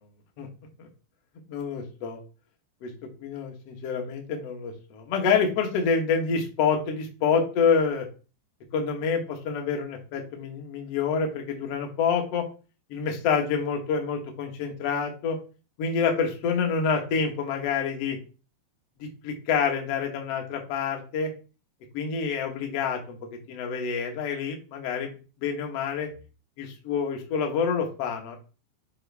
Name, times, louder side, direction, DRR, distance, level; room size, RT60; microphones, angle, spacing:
voice 1, 1.5-2.2 2.8-2.9 3.2-8.1 8.7-12.5 12.9-15.4 15.8-18.2 19.0-21.3 21.9-23.2 23.5-26.1 26.6-28.4, left 6 dB, 65° left, 2 dB, 1.6 m, -27 dB
7.6 x 5.1 x 3.5 m, 0.34 s
omnidirectional pair, 4.9 m